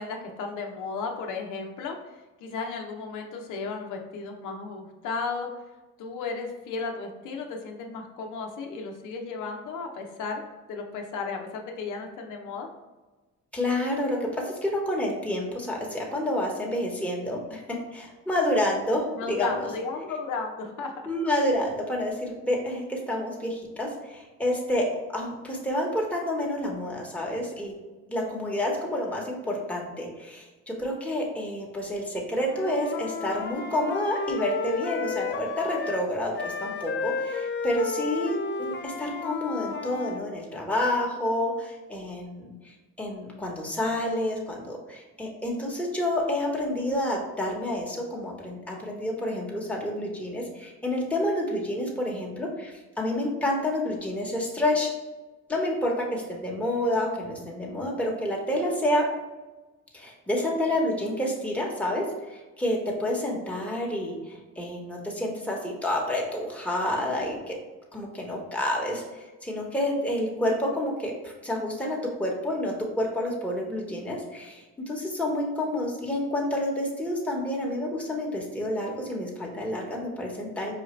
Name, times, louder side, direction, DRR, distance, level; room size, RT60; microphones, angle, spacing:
voice 1, 0.0-2.0 2.4-5.5 6.0-10.4 10.7-12.7 19.2-20.9, left 4 dB, 85° left, 2 dB, 0.7 m, -34 dB
voice 2, 13.5-19.7 21.1-24.9 25.1-27.7 28.1-52.7 53.0-54.9 55.5-59.1 59.9-67.6 67.9-80.7, left 1 dB, 5° left, -2 dB, 1.0 m, -29 dB
Wind instrument woodwind instrument, 32.4-36.1 36.3-40.2, left 4 dB, 40° left, 0.4 m, -32 dB
4.9 x 2.5 x 3.1 m, 1.2 s
cardioid pair, 90°, 30 cm